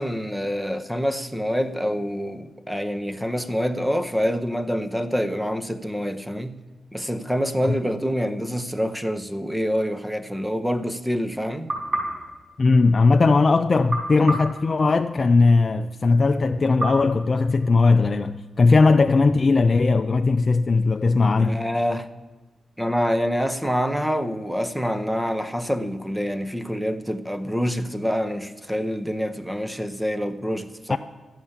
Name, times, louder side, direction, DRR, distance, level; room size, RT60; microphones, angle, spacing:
voice 1, 0.0-6.6 6.9-11.7 21.4-22.1 22.8-31.0, equal, 5° right, 0.8 m, -26 dB
sound 1, 11.7-13.3 13.9-15.5 16.8-18.2, right 1 dB, 40° right, 5.6 m, -32 dB
voice 2, 12.6-21.6 30.9-31.0, left 3 dB, 40° left, 0.4 m, -18 dB
12.5 x 7.9 x 7.3 m
cardioid pair, 90°, 0 cm